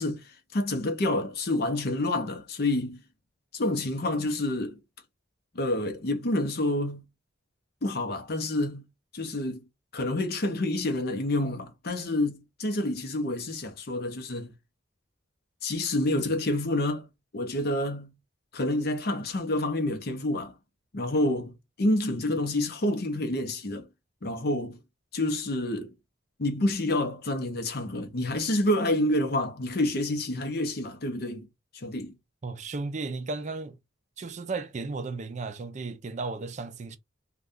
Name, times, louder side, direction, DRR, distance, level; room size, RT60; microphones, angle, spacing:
voice 1, 0.0-3.0 3.5-4.8 5.5-7.0 7.8-8.9 9.1-9.6 9.9-14.5 15.6-17.1 17.3-18.1 18.5-20.5 20.9-23.9 24.2-24.8 25.1-25.9 26.4-31.5 31.7-32.1, left 1 dB, 55° left, 0.7 m, -28 dB
voice 2, 32.4-33.8 34.2-37.0, right 3 dB, 35° right, 0.4 m, -34 dB
2.6 x 2.3 x 3.5 m
head